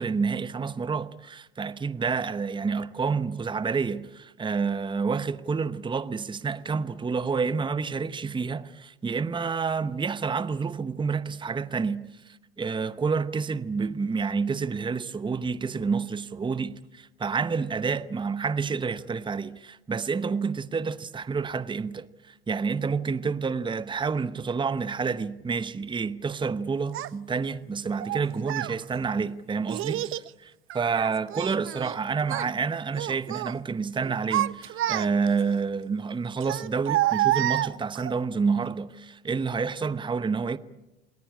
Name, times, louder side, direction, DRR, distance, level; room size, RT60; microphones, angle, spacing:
voice 1, 0.0-40.6, right 5 dB, 15° right, 0.9 m, -29 dB
Child speech kid speaking, 26.9-27.1 28.0-28.8 29.7-30.3 30.7-32.0 32.2-32.5 32.9-33.5 34.0-35.4 36.4-38.1, right 14 dB, 45° right, 0.8 m, -28 dB
29.0 x 20.0 x 8.6 m
hypercardioid pair, 75°, 30 cm